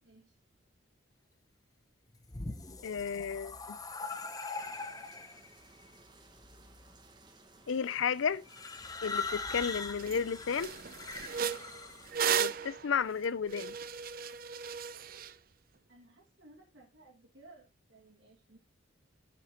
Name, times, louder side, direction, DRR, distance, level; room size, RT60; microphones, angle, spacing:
voice 1, 0.0-0.4 15.9-18.6, right 2 dB, 70° right, 2.4 m, -58 dB
sound 1, 2.1-5.5 6.4-6.9 8.5-12.1, left 4 dB, 20° left, 0.9 m, -41 dB
voice 2, 2.8-3.8 7.7-8.4 9.0-10.7 12.4-13.8, left 6 dB, 75° left, 0.5 m, -33 dB
sound 2, 4.6-12.2, right 2 dB, 20° right, 1.4 m, -59 dB
sound 3, 9.5-9.6 10.0-10.2 10.6-15.3, right 8 dB, 45° right, 0.5 m, -35 dB
8.3 x 5.8 x 4.5 m
head